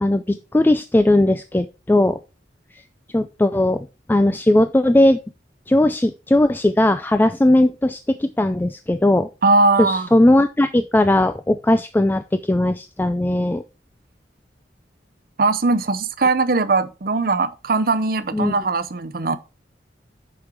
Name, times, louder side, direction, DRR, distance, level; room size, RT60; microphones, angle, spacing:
voice 1, 0.0-2.2 3.1-5.2 5.7-9.3 9.8-13.6 18.3-18.5, left 1 dB, 10° left, 0.3 m, -18 dB
voice 2, 9.4-10.1 15.4-19.4, right 3 dB, 55° right, 0.7 m, -19 dB
6.7 x 5.3 x 4.7 m
head